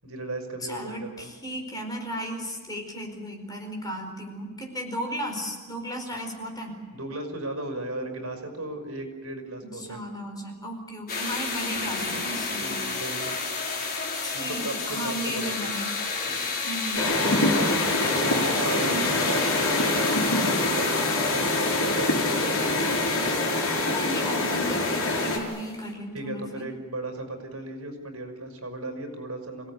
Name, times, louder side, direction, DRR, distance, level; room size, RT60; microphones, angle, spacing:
voice 1, 0.0-1.3 6.9-10.0 11.9-12.2 12.6-13.4 14.3-15.7 16.3-16.5 17.2-17.8 18.1-23.2 26.1-29.7, right 2 dB, 75° right, 5 dB, 5.5 m, -36 dB
voice 2, 0.6-6.8 9.8-12.8 14.2-15.9 16.6-17.8 18.8-19.1 23.8-26.7, equal, 20° left, 2 dB, 4.9 m, -35 dB
sound 1, 11.1-25.9, left 4 dB, 45° left, 4.4 m, -32 dB
sound 2, 16.9-25.4, left 2 dB, 65° left, 6.2 m, -25 dB
27.5 x 17.5 x 9.8 m, 1.4 s
head